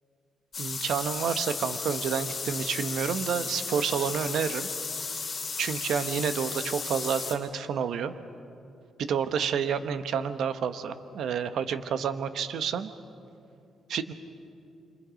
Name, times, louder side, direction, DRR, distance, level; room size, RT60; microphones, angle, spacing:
sound 1, 0.5-7.3, left 5 dB, 30° left, 2.9 m, -34 dB
voice 1, 0.6-4.7 5.6-8.1 9.0-12.9 13.9-14.1, right 7 dB, 65° right, 10 dB, 1.0 m, -29 dB
28.5 x 26.0 x 5.2 m, 2.6 s
cardioid pair, 165°, 0 cm